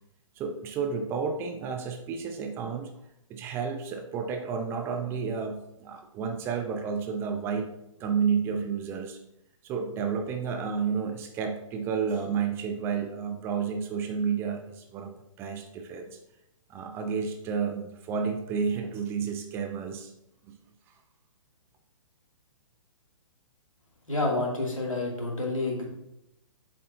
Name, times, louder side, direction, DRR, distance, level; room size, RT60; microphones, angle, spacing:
voice 1, 0.4-2.9 3.3-7.7 8.0-9.2 9.6-15.1 15.4-16.2 16.7-20.1 20.5-20.6, right 6 dB, 15° right, 5 dB, 0.4 m, -31 dB
voice 2, 24.1-25.9, left 2 dB, 80° left, -2 dB, 2.5 m, -29 dB
7.5 x 7.5 x 2.7 m, 0.83 s
figure-of-eight pair, 125°, 17 cm